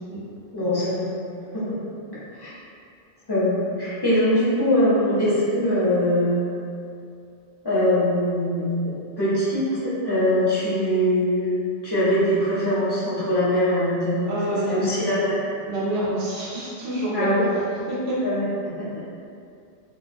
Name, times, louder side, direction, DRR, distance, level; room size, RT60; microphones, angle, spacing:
voice 1, 0.5-1.1 1.5-1.8 2.4-2.5 3.3-6.4 7.6-11.5 11.8-14.4 14.7-15.4 17.1-17.4 18.2-19.0, left 1 dB, 30° left, -11 dB, 0.6 m, -22 dB
voice 2, 14.2-15.0 15.7-17.5 17.9-18.2, right 1 dB, 90° right, -7 dB, 1.0 m, -27 dB
2.2 x 2.2 x 2.5 m, 2.4 s
omnidirectional pair, 1.1 m